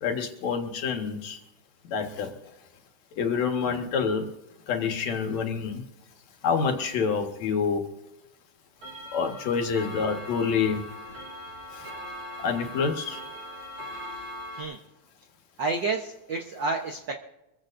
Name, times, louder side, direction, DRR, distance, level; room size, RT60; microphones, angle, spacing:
voice 1, 0.0-1.4 1.9-2.3 3.2-4.3 4.7-5.8 6.4-7.9 9.1-10.9 11.7-11.9 12.4-13.2, left 6 dB, 65° left, 3 dB, 2.7 m, -27 dB
Clock, 8.8-14.6, left 1 dB, 50° right, 7.7 m, -40 dB
voice 2, 15.6-17.1, right 3 dB, 65° right, 3 dB, 1.1 m, -29 dB
25.5 x 15.5 x 2.6 m, 0.96 s
omnidirectional pair, 3.4 m